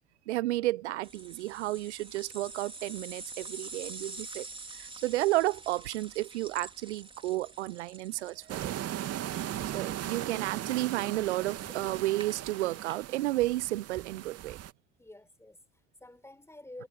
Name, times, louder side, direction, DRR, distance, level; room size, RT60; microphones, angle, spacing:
voice 1, 0.3-4.5 4.7-8.7 9.7-14.6, right 17 dB, 75° right, 0.9 m, -32 dB
sound 1, 1.0-13.0, right 3 dB, 15° right, 4.3 m, -47 dB
sound 2, 8.5-14.7, right 12 dB, 45° right, 2.6 m, -38 dB
voice 2, 9.5-10.0 15.0-16.9, left 1 dB, 5° left, 7.4 m, -50 dB
figure-of-eight pair, 65°, 35 cm